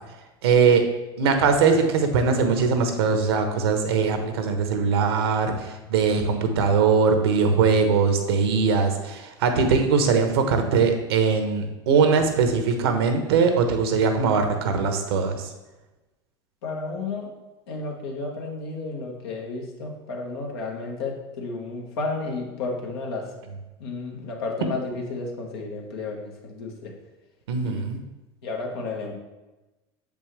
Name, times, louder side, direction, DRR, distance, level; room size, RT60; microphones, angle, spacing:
voice 1, 0.4-0.8 1.2-15.5 23.5-23.6 27.5-28.0, right 5 dB, 75° right, 6 dB, 1.0 m, -21 dB
voice 2, 16.6-17.3 17.7-23.2 23.8-24.8 25.1-26.9 27.6-27.8 28.4-29.1, left 3 dB, 75° left, 0 dB, 1.5 m, -32 dB
6.9 x 5.3 x 3.2 m, 1.1 s
hypercardioid pair, 85°, 13 cm